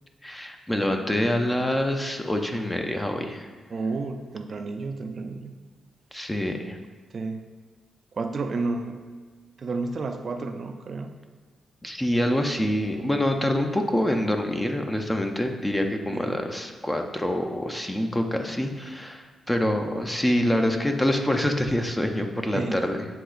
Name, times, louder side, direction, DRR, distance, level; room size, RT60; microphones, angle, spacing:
voice 1, 0.2-3.5 6.1-6.8 11.8-23.1, left 1 dB, 10° left, 4 dB, 0.5 m, -26 dB
voice 2, 3.7-5.5 7.1-7.4 8.1-9.1 9.6-11.2 16.1-16.4 22.5-22.9, right 3 dB, 50° right, 6 dB, 0.3 m, -31 dB
7.4 x 2.9 x 2.4 m, 1.5 s
cardioid pair, 80°, 0 cm